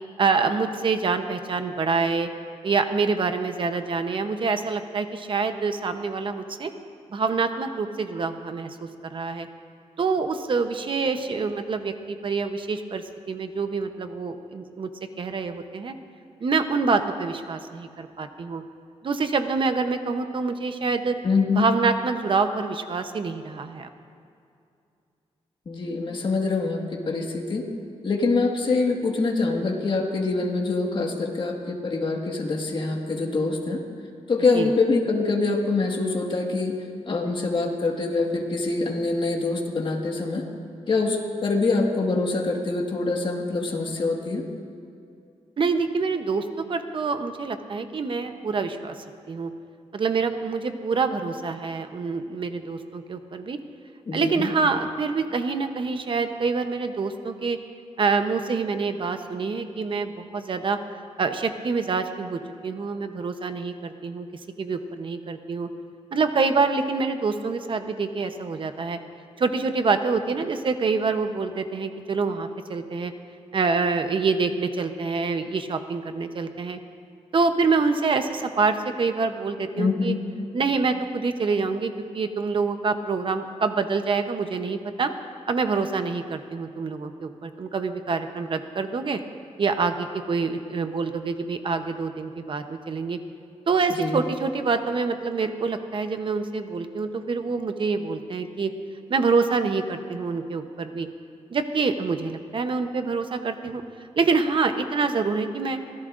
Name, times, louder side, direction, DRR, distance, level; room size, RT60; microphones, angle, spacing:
voice 1, 0.2-2.3 2.6-6.7 7.1-9.5 10.0-14.9 15.2-15.9 16.4-18.6 19.0-21.2 21.5-23.9 34.5-34.7 45.6-49.5 49.9-53.6 54.1-57.6 58.0-60.8 61.2-64.3 64.6-65.7 66.1-69.0 69.4-73.1 73.5-76.8 77.3-80.1 80.5-85.1 85.5-89.2 89.6-93.2 93.7-98.7 99.1-101.1 101.5-103.8 104.2-105.8, right 4 dB, 45° right, 8 dB, 0.8 m, -26 dB
voice 2, 21.2-21.7 25.7-27.7 28.0-33.8 34.3-36.8 37.1-40.5 40.9-44.5 54.1-54.5 79.8-80.5 93.9-94.2, left 3 dB, 45° left, 1 dB, 1.7 m, -25 dB
25.0 x 17.0 x 2.6 m, 2.5 s
wide cardioid pair, 145°, 12 cm